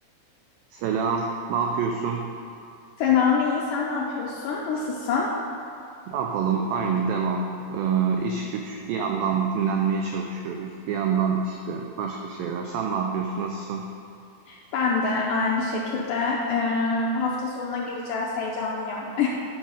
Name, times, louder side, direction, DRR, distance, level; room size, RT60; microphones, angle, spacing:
voice 1, 0.7-2.3 6.1-13.9, right 6 dB, 85° right, 2 dB, 2.1 m, -26 dB
voice 2, 3.0-5.3 8.8-8.9 14.5-19.3, left 5 dB, 85° left, -2 dB, 1.9 m, -25 dB
9.5 x 5.4 x 6.4 m, 2.5 s
omnidirectional pair, 4.7 m